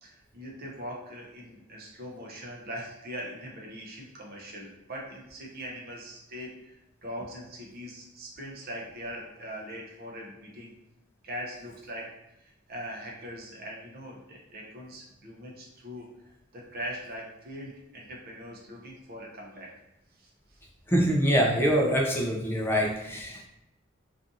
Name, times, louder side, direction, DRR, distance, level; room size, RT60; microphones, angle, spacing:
voice 1, 0.0-10.7 11.2-12.1 12.4-16.1 16.5-19.7 20.1-20.6, equal, 45° right, -1 dB, 0.6 m, -41 dB
voice 2, 20.9-23.5, equal, 10° left, -1 dB, 0.4 m, -24 dB
2.5 x 2.4 x 2.6 m, 0.89 s
head